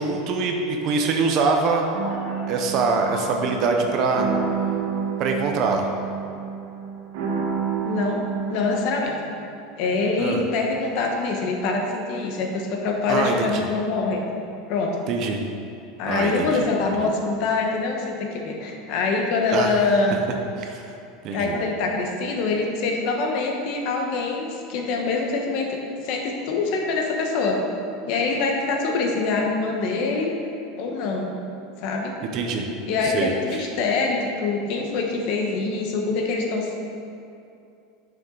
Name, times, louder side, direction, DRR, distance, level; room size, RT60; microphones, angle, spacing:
voice 1, 0.0-1.9 2.5-4.3 5.2-5.9 10.2-10.4 13.1-13.6 15.1-15.4 16.1-16.7 17.0-17.1 19.5-19.7 20.6-20.8 21.2-21.6 32.3-32.7 33.0-33.3, right 4 dB, 35° right, 3 dB, 0.7 m, -24 dB
sound 1, 1.9-9.0, right 6 dB, 70° right, 1.8 m, -29 dB
voice 2, 7.8-8.2 8.5-9.2 9.8-14.2 14.7-15.0 16.0-20.2 21.3-25.8 26.0-27.6 28.0-30.3 30.8-31.3 31.8-32.1 32.9-36.8, left 3 dB, 45° left, 1 dB, 1.1 m, -24 dB
9.5 x 6.9 x 3.9 m, 2.7 s
supercardioid pair, 175°, 0 cm